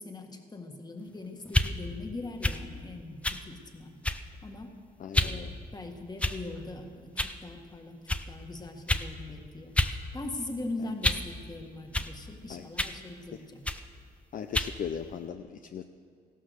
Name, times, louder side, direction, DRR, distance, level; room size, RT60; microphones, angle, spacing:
voice 1, 0.0-4.0 4.4-4.7 5.2-8.0 8.3-13.6, left 2 dB, 25° left, 4 dB, 1.7 m, -41 dB
sound 1, 1.5-1.7 2.4-2.6 3.2-3.4 4.0-4.3 5.1-5.4 6.2-6.6 7.2-7.4 8.1-8.2 8.9-9.1 9.8-10.0 10.3-11.3 11.9-12.1 12.8-13.0 13.6-13.8 14.5-14.7, left 1 dB, 5° left, 0.6 m, -28 dB
voice 2, 5.0-5.5 12.5-12.7 13.3-13.4 14.3-15.8, left 7 dB, 55° left, 7 dB, 0.6 m, -38 dB
15.0 x 12.0 x 6.4 m, 2.2 s
cardioid pair, 90°, 17 cm